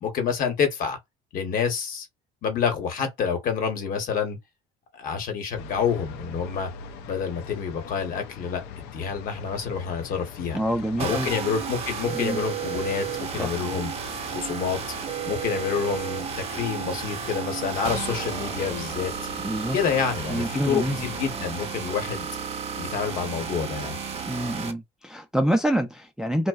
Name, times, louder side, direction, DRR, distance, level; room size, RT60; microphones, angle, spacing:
voice 1, 0.0-1.0 1.3-2.1 2.4-4.4 4.9-6.7 7.1-10.6 11.0-13.9 14.3-14.8 15.2-19.1 19.7-22.3 22.8-24.0, left 6 dB, 55° left, 1.0 m, -28 dB
sound 1, 5.5-21.4, left 6 dB, 80° left, 0.5 m, -42 dB
voice 2, 10.5-11.3 12.1-12.4 13.4-13.5 19.4-19.8 20.3-21.1 24.3-26.5, right 1 dB, 5° right, 0.3 m, -26 dB
sound 2, 11.0-24.7, right 7 dB, 35° right, 0.6 m, -32 dB
2.6 x 2.0 x 2.3 m
cardioid pair, 115°, 17 cm